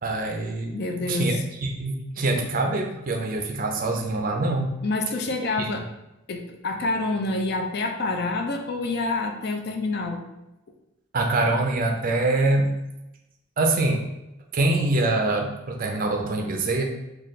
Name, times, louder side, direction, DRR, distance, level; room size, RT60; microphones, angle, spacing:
voice 1, 0.0-0.8 1.1-4.7 5.6-5.7 11.1-12.7 13.6-14.0 14.5-16.8, right 2 dB, 40° right, 3 dB, 0.4 m, -24 dB
voice 2, 0.7-1.4 4.8-5.9 6.3-10.2, left 2 dB, 50° left, 3 dB, 0.4 m, -27 dB
4.0 x 2.3 x 3.1 m, 0.93 s
head